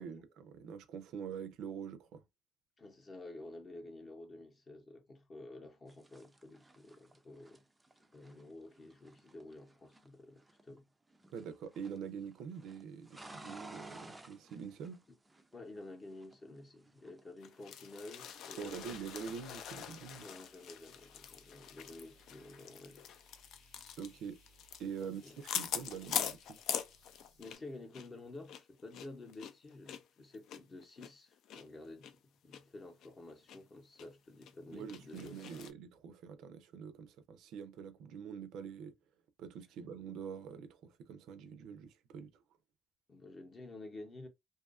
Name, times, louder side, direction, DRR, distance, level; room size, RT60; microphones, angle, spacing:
voice 1, 0.0-2.2 11.3-15.0 18.6-20.3 24.0-24.4 24.8-25.2 25.5-26.6 34.7-39.0 39.4-42.3, right 7 dB, 75° right, 0.4 m, -45 dB
voice 2, 2.8-7.6 8.1-10.9 15.1-15.2 15.5-18.9 20.2-23.1 25.0-25.4 27.4-35.4 43.1-44.3, left 2 dB, 25° left, 0.7 m, -51 dB
sound 1, 5.9-10.8 11.1-12.1 12.3-15.8 16.1-18.5 18.8-20.5, right 2 dB, 10° right, 0.3 m, -56 dB
sound 2, 17.4-27.7 27.9-28.1 28.4-31.6 32.0-32.1 32.5-32.6 33.0-33.6 34.0-34.1 34.4-35.7, left 9 dB, 65° left, 0.3 m, -43 dB
sound 3, 18.2-27.6, left 2 dB, 90° left, 1.1 m, -65 dB
2.6 x 2.3 x 2.3 m
cardioid pair, 140°, 0 cm